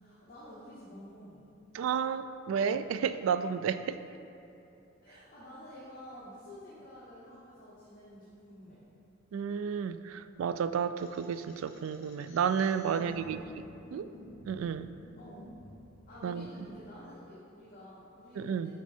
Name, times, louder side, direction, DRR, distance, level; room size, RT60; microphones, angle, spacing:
voice 1, 0.0-1.4 5.0-8.8 12.9-14.2 15.2-15.5 16.1-18.7, equal, 45° left, -10 dB, 1.3 m, -50 dB
voice 2, 1.7-4.0 9.3-13.4 13.9-14.1 14.5-14.9 16.2-16.5 18.4-18.7, right 7 dB, 85° right, 12 dB, 0.3 m, -31 dB
sound 1, 11.0-16.7, left 1 dB, 70° left, 0.9 m, -54 dB
7.3 x 4.5 x 4.3 m, 2.8 s
head